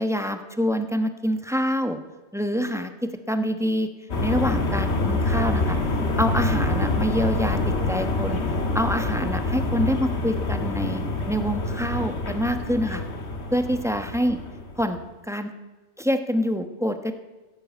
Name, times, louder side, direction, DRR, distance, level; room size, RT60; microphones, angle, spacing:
voice 1, 0.0-2.0 2.3-3.9 4.2-5.8 6.2-8.4 8.7-13.0 13.5-14.4 14.8-15.0 15.3-15.5 16.0-17.1, equal, 5° right, 7 dB, 0.9 m, -26 dB
sound 1, 4.1-15.0, left 2 dB, 60° left, 1.8 m, -26 dB
16.0 x 7.8 x 8.2 m, 1.2 s
omnidirectional pair, 1.3 m